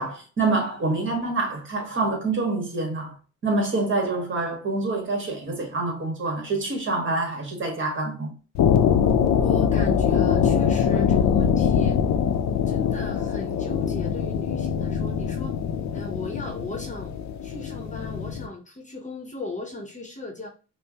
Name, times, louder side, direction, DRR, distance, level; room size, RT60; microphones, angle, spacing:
voice 1, 0.0-3.1 3.4-8.3 10.9-11.0, right 3 dB, 40° right, 1.5 m, -26 dB
sound 1, 8.5-18.5, left 8 dB, 65° left, 0.6 m, -23 dB
voice 2, 9.4-12.0 12.7-15.6 15.9-17.1 17.4-20.5, left 2 dB, 25° left, 0.9 m, -36 dB
5.4 x 2.1 x 2.8 m
cardioid pair, 90°, 30 cm